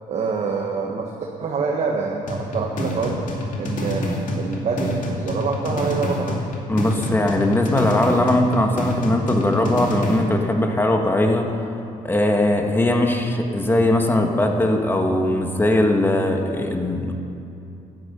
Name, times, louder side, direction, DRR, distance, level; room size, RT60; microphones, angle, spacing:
voice 1, 0.1-1.1 1.4-3.2 3.6-6.4, right 5 dB, 50° right, 0 dB, 1.5 m, -26 dB
sound 1, 2.3-10.3, left 1 dB, 65° left, 2.6 m, -27 dB
voice 2, 6.7-11.6 12.0-17.1, left 1 dB, 15° left, 3 dB, 1.7 m, -20 dB
12.5 x 11.0 x 8.6 m, 2.8 s
cardioid pair, 100°, 14 cm